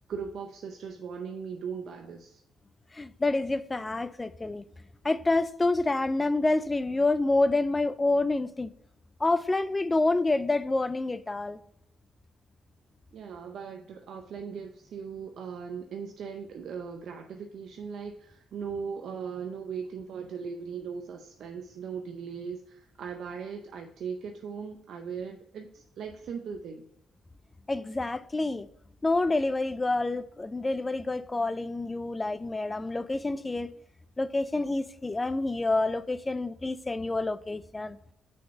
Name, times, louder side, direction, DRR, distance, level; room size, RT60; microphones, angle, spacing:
voice 1, 0.1-2.4 13.1-26.9, right 6 dB, 70° right, 0.6 m, -38 dB
voice 2, 2.9-4.6 5.0-8.7 9.2-11.6 27.7-28.7 29.0-33.7 34.2-38.0, left 2 dB, 20° left, 0.4 m, -28 dB
6.2 x 4.3 x 5.7 m
cardioid pair, 90°, 0 cm